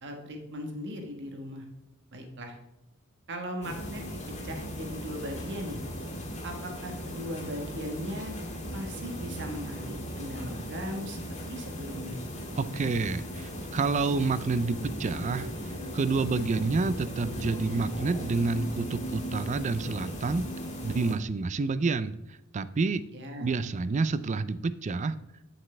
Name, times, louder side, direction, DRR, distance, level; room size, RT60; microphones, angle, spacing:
voice 1, 0.0-1.7 2.1-2.6 3.3-4.0 4.4-5.8 6.4-8.3 8.7-12.2 23.1-23.6, equal, 50° right, 3 dB, 1.3 m, -38 dB
sound 1, 3.6-21.1, equal, 30° left, 1.8 m, -38 dB
voice 2, 12.6-20.5 20.8-23.0 23.4-25.2, right 4 dB, 30° right, 15 dB, 0.3 m, -29 dB
8.9 x 7.5 x 3.3 m, 0.96 s
head